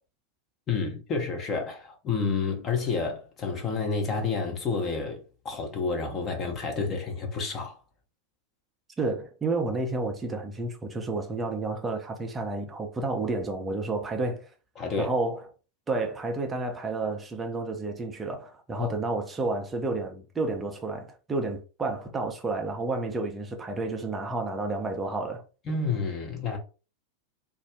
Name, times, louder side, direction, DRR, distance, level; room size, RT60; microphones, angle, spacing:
voice 1, 0.7-7.8 14.8-15.1 18.8-18.9 25.7-26.6, left 4 dB, 25° left, 0.8 m, -29 dB
voice 2, 9.0-14.5 15.0-15.4 15.9-25.4, right 3 dB, 15° right, 0.5 m, -30 dB
2.5 x 2.1 x 3.6 m
figure-of-eight pair, 90°, 0 cm